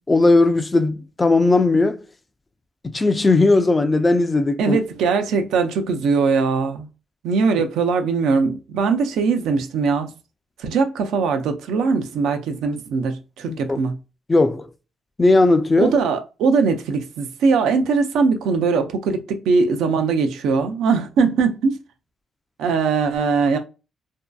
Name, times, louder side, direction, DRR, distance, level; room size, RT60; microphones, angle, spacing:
voice 1, 0.1-2.0 2.8-4.8 13.5-13.8 14.3-14.7 15.2-15.9, left 2 dB, 20° left, 0.3 m, -17 dB
voice 2, 4.6-6.9 7.2-10.1 10.6-14.0 15.8-21.8 22.6-23.6, right 5 dB, 85° right, 0.4 m, -20 dB
2.6 x 2.2 x 2.2 m
cardioid pair, 90°, 0 cm